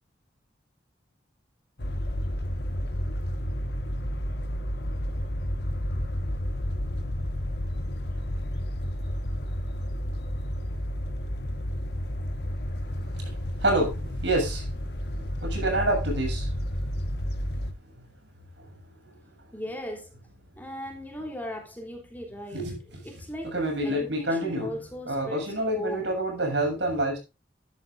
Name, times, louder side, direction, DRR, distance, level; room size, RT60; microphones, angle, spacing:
sound 1, 1.8-17.7, equal, 60° left, 1.5 m, -31 dB
voice 1, 12.9-14.7 15.1-16.5 17.9-18.1 18.6-18.8 22.5-23.0 23.4-24.8 25.1-27.2, right 1 dB, 70° right, 7.5 m, -28 dB
voice 2, 19.5-20.1 20.6-22.6 23.0-23.6 23.8-26.1, equal, 10° left, 3.3 m, -38 dB
13.0 x 12.5 x 2.6 m
head